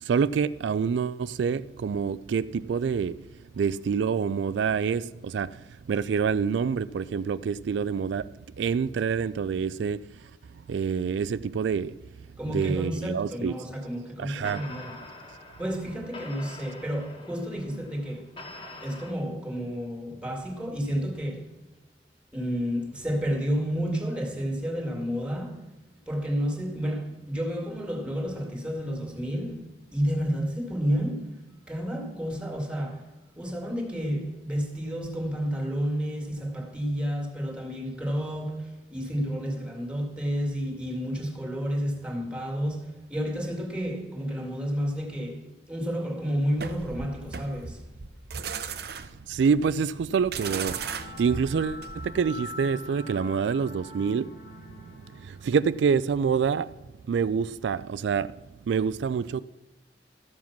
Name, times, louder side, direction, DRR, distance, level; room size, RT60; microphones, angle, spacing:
voice 1, 0.0-3.3 3.5-12.0 12.5-13.5 14.2-14.6 48.9-49.0 49.3-56.7 57.1-58.4 58.7-59.4, right 6 dB, 85° right, 0.3 m, -27 dB
voice 2, 12.4-15.1 15.6-18.4 18.8-21.6 22.3-25.7 26.1-47.9, equal, 5° right, 2.2 m, -31 dB
sound 1, 14.4-19.1, left 2 dB, 30° left, 1.8 m, -45 dB
sound 2, 46.6-52.3, right 6 dB, 65° right, 0.7 m, -37 dB
sound 3, 50.4-55.8, left 1 dB, 70° left, 1.6 m, -44 dB
13.5 x 7.2 x 5.9 m
head